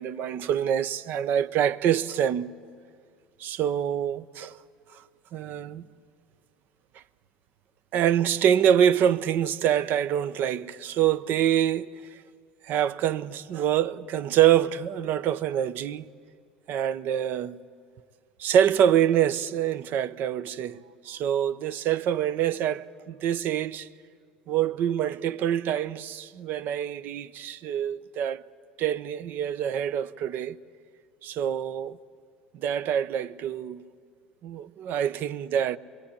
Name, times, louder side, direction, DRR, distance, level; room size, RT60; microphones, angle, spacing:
voice 1, 0.0-2.5 3.4-4.6 5.3-5.9 7.9-11.9 12.7-16.1 16.7-17.6 18.4-23.9 24.5-28.4 28.8-30.6 31.2-32.0 32.5-33.8 34.4-35.8, right 10 dB, 50° right, 0.8 m, -25 dB
26.5 x 22.5 x 8.5 m
hypercardioid pair, 70°, 4 cm